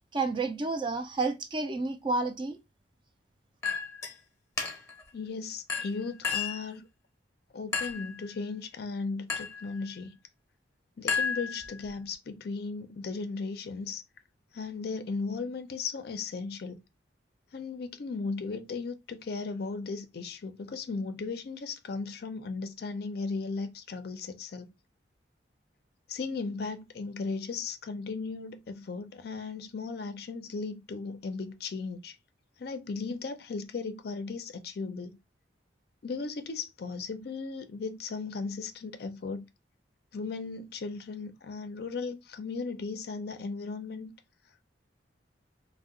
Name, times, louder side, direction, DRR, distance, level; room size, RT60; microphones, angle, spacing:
voice 1, 0.1-2.6, right 3 dB, 25° right, 0.3 m, -30 dB
Chink clink, 3.6-4.1 4.6-5.0 5.7-6.7 7.7-8.1 9.3-9.6 11.1-11.9, left 6 dB, 15° left, 0.7 m, -32 dB
voice 2, 5.1-6.9 7.5-10.2 11.0-14.0 14.5-16.8 17.5-24.7 26.1-32.2 32.6-35.2 36.0-39.4 40.1-44.1, left 4 dB, 55° left, 0.4 m, -36 dB
2.7 x 2.1 x 3.6 m
head